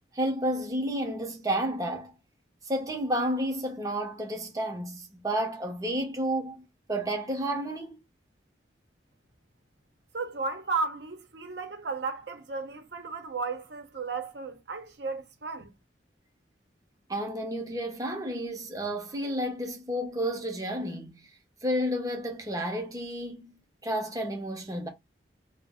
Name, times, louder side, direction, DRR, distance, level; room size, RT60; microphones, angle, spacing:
voice 1, 0.1-2.1 2.7-8.0 17.1-21.3 21.6-23.5 23.8-24.9, equal, 20° right, 0.6 m, -31 dB
voice 2, 10.1-15.7, right 4 dB, 70° right, 0.7 m, -34 dB
2.4 x 2.0 x 3.4 m
head